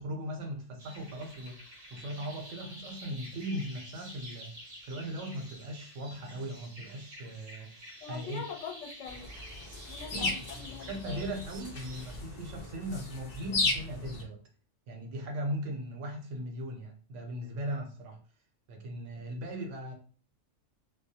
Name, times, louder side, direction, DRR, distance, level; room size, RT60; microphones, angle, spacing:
voice 1, 0.0-8.4 10.1-14.4 14.9-18.2 18.7-19.9, right 1 dB, 75° right, 1.0 m, -39 dB
sound 1, 0.8-12.2, equal, 40° right, 0.7 m, -49 dB
voice 2, 8.0-9.3 9.9-11.3, left 7 dB, 75° left, 0.9 m, -43 dB
sound 2, 9.1-14.2, left 3 dB, 50° left, 0.5 m, -36 dB
2.3 x 2.1 x 2.7 m
omnidirectional pair, 1.3 m